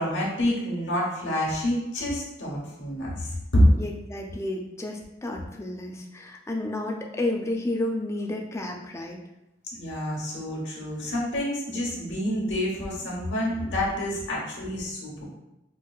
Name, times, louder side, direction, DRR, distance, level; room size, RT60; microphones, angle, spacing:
voice 1, 0.0-3.7 9.7-15.3, equal, 90° left, -4 dB, 1.0 m, -27 dB
voice 2, 3.7-9.2, left 1 dB, 15° left, 1 dB, 0.4 m, -31 dB
4.4 x 2.4 x 2.3 m, 0.93 s
head